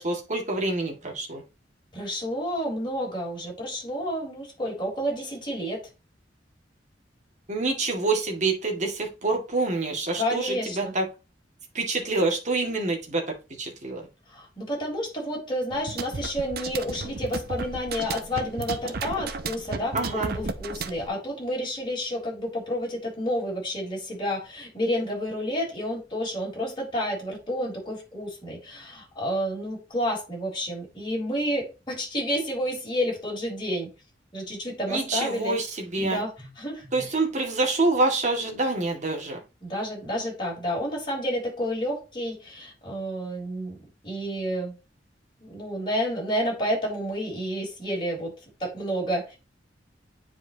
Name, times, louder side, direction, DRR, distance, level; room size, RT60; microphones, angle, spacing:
voice 1, 0.0-1.4 7.5-11.1 11.7-13.2 13.6-14.1 19.9-20.3 34.9-36.2 36.9-39.4, right 3 dB, 45° right, 1 dB, 2.1 m, -26 dB
voice 2, 1.9-5.8 10.2-10.9 14.3-33.9 34.3-35.6 36.0-36.3 36.6-36.9 39.6-43.8 44.0-44.8 45.4-49.4, equal, 25° left, -3 dB, 4.2 m, -30 dB
sound 1, 15.7-21.1, right 4 dB, 60° right, 0.7 m, -34 dB
9.4 x 4.9 x 2.9 m, 0.29 s
head